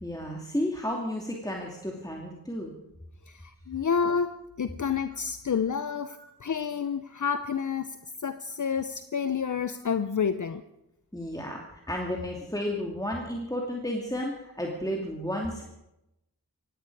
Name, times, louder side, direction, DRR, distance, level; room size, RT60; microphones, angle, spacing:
voice 1, 0.0-2.7 6.2-6.3 11.1-15.6, left 1 dB, 10° left, 0 dB, 2.6 m, -32 dB
voice 2, 3.3-10.6, left 6 dB, 55° left, 11 dB, 0.8 m, -29 dB
17.5 x 16.0 x 4.8 m, 0.87 s
cardioid pair, 50°, 37 cm